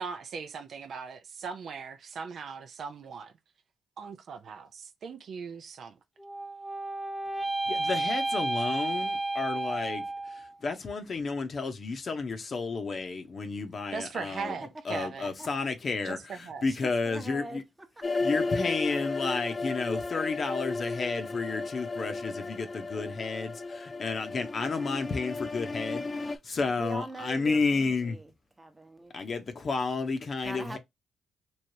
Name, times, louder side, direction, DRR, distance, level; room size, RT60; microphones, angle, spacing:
voice 1, 0.0-3.3 4.0-6.0 13.9-15.3 16.0-16.7, right 5 dB, 65° right, 0.5 m, -39 dB
sound 1, 6.2-10.5, right 2 dB, 5° left, 1.0 m, -32 dB
voice 2, 7.7-14.6 14.8-17.6 18.2-26.0 26.6-28.2 29.1-30.8, left 4 dB, 50° left, 0.8 m, -31 dB
voice 3, 16.7-17.6 18.0-18.2 18.8-19.4 26.6-28.3 28.6-29.1 30.4-30.8, right 2 dB, 20° right, 0.9 m, -42 dB
sound 2, 18.0-26.4, left 3 dB, 35° left, 0.4 m, -34 dB
3.2 x 2.8 x 2.7 m
supercardioid pair, 60°, 0 cm